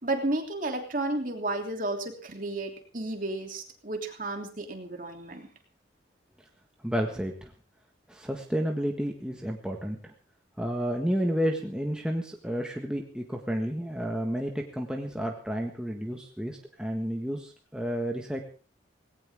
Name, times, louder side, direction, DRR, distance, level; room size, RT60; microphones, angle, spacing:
voice 1, 0.0-5.5, right 2 dB, 45° right, 3 dB, 3.1 m, -32 dB
voice 2, 6.8-7.5 8.1-10.1 10.6-18.4, equal, 5° right, 1 dB, 1.6 m, -31 dB
19.0 x 17.5 x 3.6 m, 0.38 s
head